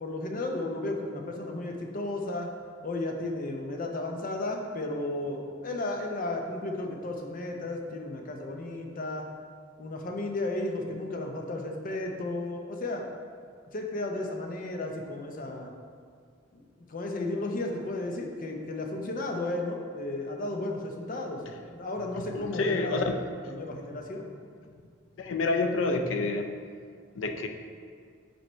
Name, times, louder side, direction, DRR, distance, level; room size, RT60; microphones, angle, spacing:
voice 1, 0.0-2.5 2.8-9.3 9.8-13.1 13.7-15.7 16.5-21.4 21.7-24.3, left 2 dB, 45° left, 2 dB, 0.7 m, -34 dB
voice 2, 22.4-23.0 25.2-26.5 27.2-27.5, left 3 dB, 85° left, 6 dB, 0.5 m, -28 dB
5.2 x 4.8 x 4.4 m, 2.1 s
head